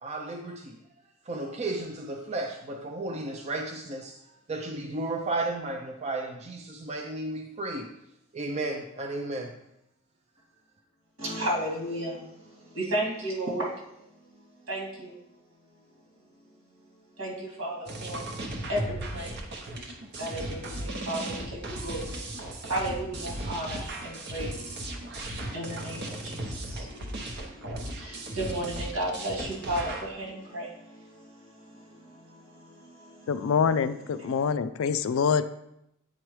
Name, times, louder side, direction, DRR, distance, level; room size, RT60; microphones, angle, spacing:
voice 1, 0.0-0.8 1.2-7.9 8.3-9.5, right 2 dB, 30° right, 3 dB, 0.4 m, -33 dB
voice 2, 11.2-13.7 14.7-15.1 17.2-18.2 18.7-19.4 19.8-33.5 34.2-34.5, right 1 dB, 75° right, -3 dB, 2.2 m, -35 dB
sound 1, 17.9-30.1, right 1 dB, 50° right, 0.8 m, -36 dB
voice 3, 33.3-35.4, left 6 dB, 70° left, 12 dB, 0.3 m, -25 dB
8.8 x 4.7 x 3.1 m, 0.81 s
head